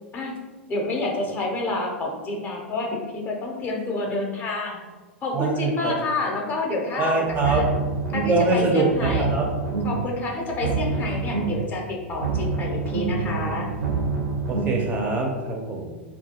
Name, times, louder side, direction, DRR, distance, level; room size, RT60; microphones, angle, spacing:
voice 1, 0.7-4.8 5.2-7.6 8.1-9.3 9.8-13.7, left 2 dB, 25° left, 0 dB, 0.5 m, -28 dB
voice 2, 5.3-5.9 7.0-7.8 8.3-9.5 14.5-15.9, right 2 dB, 30° right, 0 dB, 0.4 m, -23 dB
sound 1, 7.3-8.5 8.9-10.1 10.5-11.7 12.1-14.9, right 4 dB, 80° right, 0.6 m, -27 dB
2.3 x 2.2 x 2.8 m, 1.3 s
hypercardioid pair, 105°, 7 cm